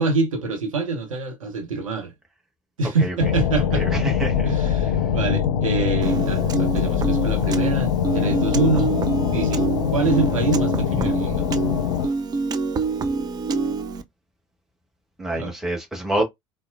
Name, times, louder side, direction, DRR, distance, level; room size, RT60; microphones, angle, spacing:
voice 1, 0.0-2.1 2.8-4.0 4.4-8.9 9.3-9.6 9.9-11.5 15.3-15.5, right 3 dB, 75° right, 0.8 m, -25 dB
sound 1, 3.2-12.1, left 8 dB, 60° left, 0.5 m, -23 dB
voice 2, 3.7-4.5 15.2-16.2, right 1 dB, ahead, 1.4 m, -26 dB
Piano, 6.0-14.0, right 4 dB, 25° right, 0.4 m, -26 dB
4.1 x 2.1 x 2.4 m
figure-of-eight pair, 70°, 17 cm